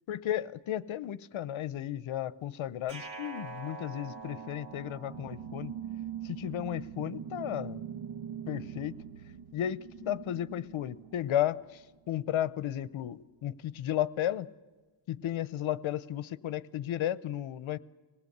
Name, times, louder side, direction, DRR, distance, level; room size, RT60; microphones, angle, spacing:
voice 1, 0.1-5.7 6.2-7.8 8.5-9.0 9.5-14.5 15.1-17.8, left 11 dB, 70° left, 18 dB, 0.9 m, -34 dB
sound 1, 2.9-6.0, right 3 dB, 60° right, 2.0 m, -45 dB
sound 2, 4.0-11.8, right 9 dB, 85° right, 1.4 m, -43 dB
25.5 x 19.0 x 8.0 m, 1.3 s
wide cardioid pair, 145°, 49 cm